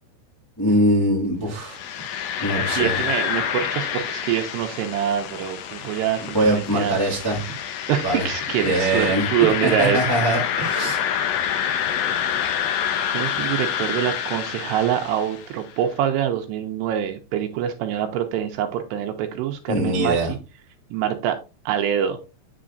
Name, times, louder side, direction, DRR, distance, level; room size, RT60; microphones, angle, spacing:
voice 1, 0.6-1.8 2.4-3.0 6.3-7.4 8.0-8.3 8.6-9.2 9.6-11.0 19.7-20.3, right 1 dB, 25° left, -5 dB, 0.4 m, -22 dB
sound 1, 1.6-15.6, left 9 dB, 75° left, 2.2 m, -27 dB
voice 2, 2.7-7.0 7.9-10.1 10.8-10.9 13.1-20.4 20.9-21.4 21.7-22.2, right 10 dB, 85° right, 5 dB, 2.7 m, -25 dB
8.5 x 6.3 x 2.5 m, 0.30 s
omnidirectional pair, 4.7 m